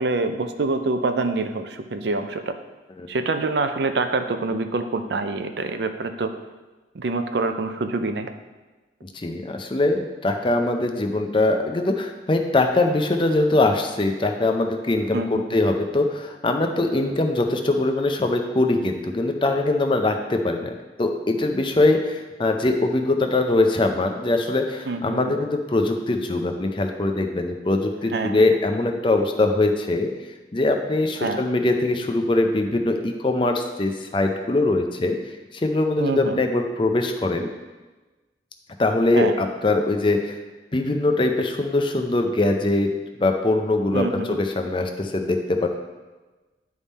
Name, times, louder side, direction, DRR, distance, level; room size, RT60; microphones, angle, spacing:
voice 1, 0.0-2.5 3.1-6.3 6.9-8.3 15.1-15.4 24.9-25.3 28.1-28.4 31.2-31.4 36.0-36.4 39.2-39.3 43.9-44.4, right 3 dB, 65° right, 8 dB, 0.5 m, -26 dB
voice 2, 9.0-20.7 21.0-30.1 30.5-35.2 35.5-37.5 38.8-40.4 40.7-42.9 43.2-45.8, left 2 dB, 25° left, 4 dB, 0.5 m, -22 dB
10.0 x 3.6 x 4.1 m, 1.2 s
head